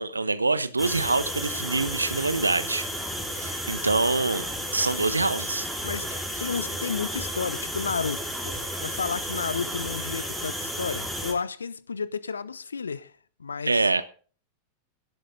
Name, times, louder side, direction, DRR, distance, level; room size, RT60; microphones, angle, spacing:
voice 1, 0.0-2.9 3.3-4.5 4.7-5.7 13.7-14.0, right 3 dB, 80° right, 1.0 m, -25 dB
sound 1, 0.8-11.3, equal, ahead, 5.1 m, -33 dB
voice 2, 5.8-13.1 13.4-13.9, left 5 dB, 75° left, 0.8 m, -32 dB
17.5 x 11.5 x 3.6 m
figure-of-eight pair, 90°, 0 cm